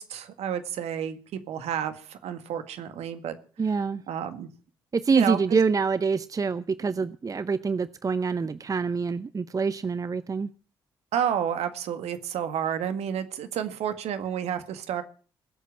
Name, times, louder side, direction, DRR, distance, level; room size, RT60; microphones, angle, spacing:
voice 1, 0.0-3.4 3.7-3.8 4.1-4.5 5.1-5.6 11.1-15.0, right 9 dB, 60° right, 10 dB, 1.8 m, -30 dB
voice 2, 3.6-4.0 4.9-10.5, right 5 dB, 30° right, 16 dB, 0.7 m, -26 dB
19.5 x 8.3 x 7.4 m, 0.40 s
figure-of-eight pair, 45°, 12 cm